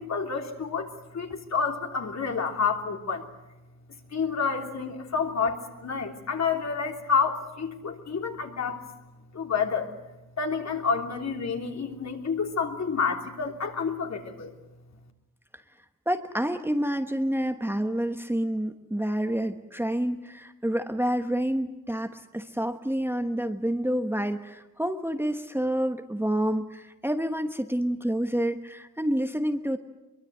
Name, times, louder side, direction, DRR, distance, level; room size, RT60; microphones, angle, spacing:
voice 1, 0.0-3.3 4.1-8.9 9.3-9.9 10.4-14.5, left 5 dB, 55° left, 3 dB, 3.1 m, -29 dB
voice 2, 16.1-29.8, equal, 5° right, 6 dB, 1.1 m, -28 dB
24.5 x 23.0 x 7.9 m, 1.0 s
wide cardioid pair, 150°, 33 cm